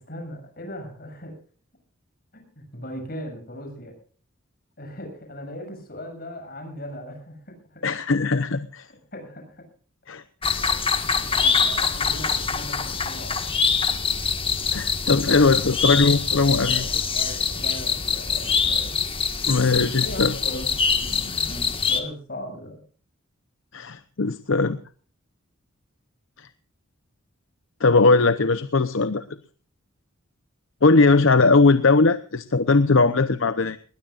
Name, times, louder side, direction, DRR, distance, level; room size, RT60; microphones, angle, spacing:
voice 1, 0.0-1.4 2.3-3.9 4.8-7.8 9.1-9.7 11.1-13.5 16.4-19.0 20.0-20.7 21.0-22.8, left 1 dB, 45° left, 4 dB, 7.4 m, -38 dB
voice 2, 7.8-8.9 10.1-10.2 14.7-16.8 19.5-20.3 23.7-24.8 26.4-26.5 27.8-29.2 30.8-33.8, left 3 dB, 70° left, 12 dB, 0.8 m, -19 dB
sound 1, 10.4-22.0, left 5 dB, 25° left, 1.7 m, -24 dB
20.5 x 20.5 x 2.5 m, 0.41 s
head